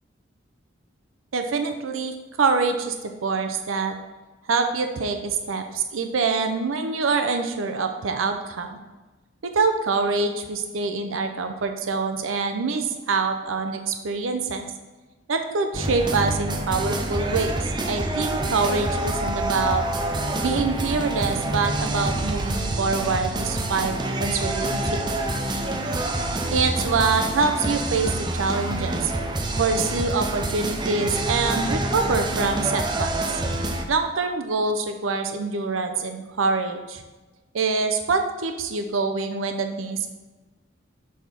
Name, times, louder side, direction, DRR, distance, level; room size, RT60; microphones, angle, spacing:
voice 1, 1.3-3.9 4.5-8.8 9.4-14.7 15.3-19.8 20.4-25.0 26.5-29.1 29.6-33.1 33.9-37.0 37.5-40.1, right 4 dB, 90° right, 6 dB, 0.6 m, -25 dB
sound 1, 15.7-33.8, right 1 dB, 20° right, 0.5 m, -27 dB
6.3 x 3.5 x 5.8 m, 1.2 s
head